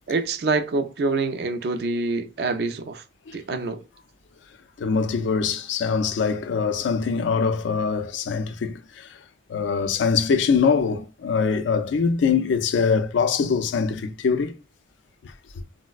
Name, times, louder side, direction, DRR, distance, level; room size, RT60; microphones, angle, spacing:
voice 1, 0.1-3.0 3.3-3.8, right 3 dB, 60° right, 0.4 m, -26 dB
voice 2, 4.8-9.2 9.5-14.6 15.2-15.3, left 5 dB, 80° left, 0.3 m, -23 dB
3.9 x 2.0 x 2.3 m
head